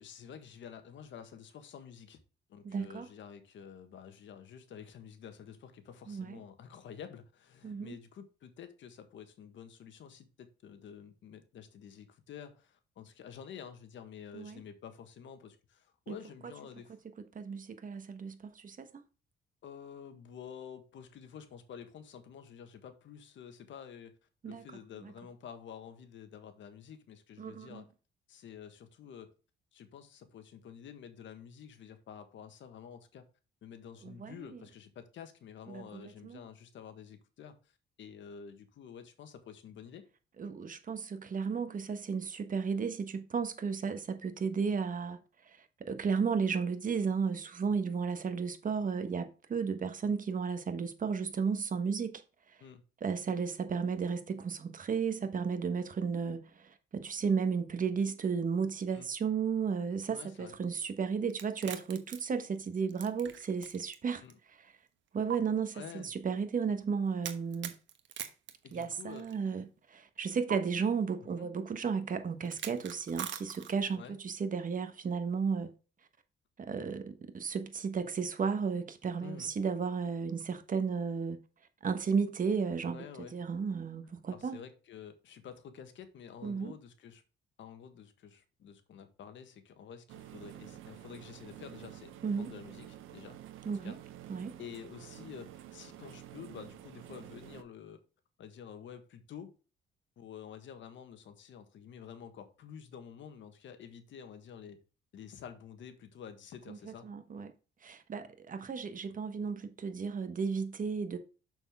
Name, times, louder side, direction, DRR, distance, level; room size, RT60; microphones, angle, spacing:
voice 1, 0.0-2.2 2.5-17.0 19.6-24.2 24.4-27.9 28.3-29.3 29.7-33.3 33.6-40.0 52.6-52.8 58.9-59.1 60.1-60.6 64.2-64.4 65.7-66.1 68.6-69.3 71.4-71.5 74.0-74.1 79.2-79.5 82.9-83.4 84.3-87.2 87.6-93.4 93.8-94.0 94.6-98.0 98.4-99.5 100.2-104.8 105.1-107.1, left 8 dB, 70° left, 1.5 m, -49 dB
voice 2, 2.6-3.1 6.1-6.4 7.6-7.9 14.3-14.6 16.1-16.2 17.3-18.9 24.4-24.6 27.4-27.8 34.0-34.3 35.7-36.4 40.4-45.2 45.5-52.2 53.0-64.2 65.1-67.7 68.7-75.7 76.6-81.4 81.8-83.0 83.3-84.6 86.4-86.7 92.2-92.5 93.6-93.9 94.3-94.5 106.7-106.8 107.0-107.5 107.8-111.2, right 5 dB, 40° right, 1.4 m, -34 dB
sound 1, 61.3-64.0 64.3-64.4 65.3-65.4 67.2-69.4 70.5-70.6 72.4-73.9, right 10 dB, 70° right, 1.2 m, -42 dB
sound 2, 90.1-97.6, right 12 dB, 85° right, 0.9 m, -50 dB
6.7 x 6.2 x 3.6 m
cardioid pair, 90°, 20 cm